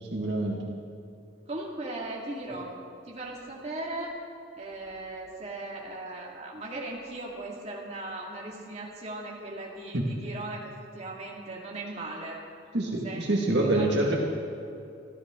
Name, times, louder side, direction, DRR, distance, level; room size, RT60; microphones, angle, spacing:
voice 1, 0.0-0.6 9.9-10.1 12.7-14.2, right 2 dB, 60° right, -2 dB, 1.9 m, -26 dB
voice 2, 1.5-2.8 3.1-4.2 4.6-12.4 13.0-13.2 13.7-13.9, right 2 dB, 35° right, -3 dB, 2.3 m, -38 dB
24.5 x 14.0 x 3.8 m, 2.7 s
head